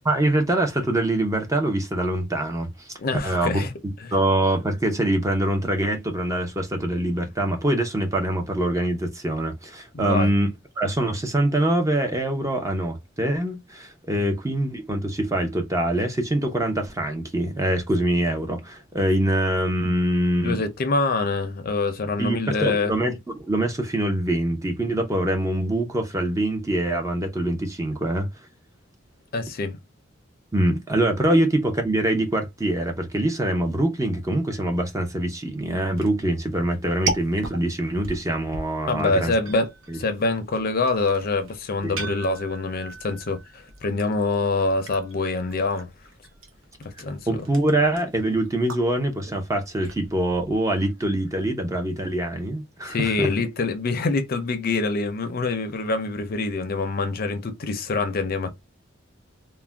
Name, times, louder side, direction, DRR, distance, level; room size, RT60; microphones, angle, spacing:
voice 1, 0.0-2.9 3.2-10.5 10.8-20.6 22.2-28.3 30.5-39.3 39.9-40.0 41.8-42.0 47.3-53.3, right 1 dB, 15° right, 0.6 m, -24 dB
voice 2, 3.0-3.7 9.9-10.3 20.4-22.9 29.3-29.8 38.9-45.9 46.8-47.4 52.9-58.5, left 3 dB, 50° left, 0.5 m, -25 dB
sound 1, 36.0-51.0, right 3 dB, 90° right, 0.7 m, -38 dB
2.4 x 2.1 x 3.3 m
head